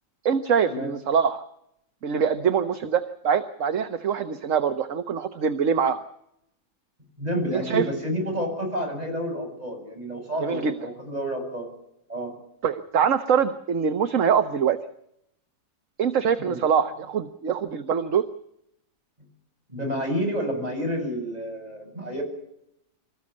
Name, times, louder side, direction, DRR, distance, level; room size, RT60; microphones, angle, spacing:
voice 1, 0.2-1.4 2.0-6.0 7.5-7.9 10.4-10.7 12.6-14.8 16.0-18.3, right 7 dB, 55° right, 9 dB, 1.4 m, -24 dB
voice 2, 7.2-11.7 12.1-12.3 16.4-16.6 19.7-22.2, equal, 25° right, 2 dB, 8.0 m, -29 dB
27.0 x 14.5 x 8.7 m, 0.76 s
omnidirectional pair, 1.7 m